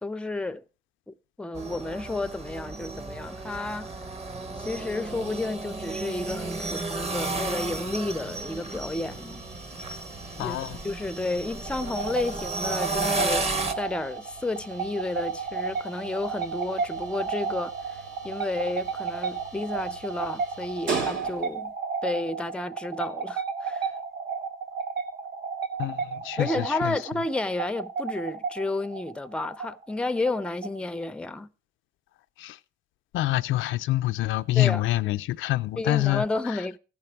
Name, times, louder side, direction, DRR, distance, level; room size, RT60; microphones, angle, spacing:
voice 1, 0.0-0.6 1.1-3.9 4.6-9.4 10.4-10.6 10.8-13.5 13.8-21.7 22.0-23.9 26.4-31.5 34.6-34.8 35.8-36.8, left 2 dB, 5° left, 0.4 m, -31 dB
sound 1, 1.6-13.7, right 2 dB, 30° right, 1.0 m, -33 dB
sound 2, 4.9-21.8, right 4 dB, 75° right, 2.1 m, -42 dB
voice 2, 10.4-10.8 25.8-27.0 32.4-32.6 33.1-36.6, left 16 dB, 80° left, 0.4 m, -26 dB
sound 3, 11.7-31.0, right 5 dB, 55° right, 1.2 m, -33 dB
15.0 x 5.9 x 4.4 m
cardioid pair, 90°, 20 cm